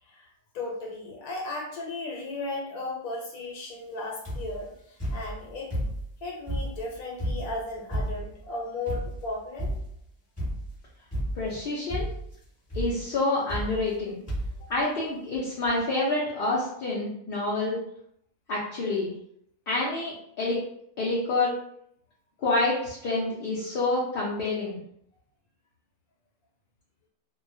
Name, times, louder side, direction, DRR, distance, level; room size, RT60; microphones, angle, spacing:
voice 1, 0.5-5.8 6.2-9.7 14.6-14.7 23.7-23.8, left 2 dB, 80° left, -1 dB, 1.1 m, -35 dB
sound 1, 4.2-4.6 5.0-6.1 6.5-8.4 8.9-9.3 9.6-10.0 10.4-10.8 11.1-11.6 11.9-12.3 12.7-13.0 13.5-14.0 14.3-14.6 15.3-15.4 15.6-15.7, equal, 15° left, 1.0 m, -32 dB
voice 2, 11.4-12.1 12.7-14.2 14.7-17.8 18.5-19.1 19.7-20.6 21.0-21.5 22.4-24.8, left 2 dB, 65° left, -6 dB, 0.5 m, -27 dB
2.3 x 2.1 x 2.5 m, 0.71 s
omnidirectional pair, 1.5 m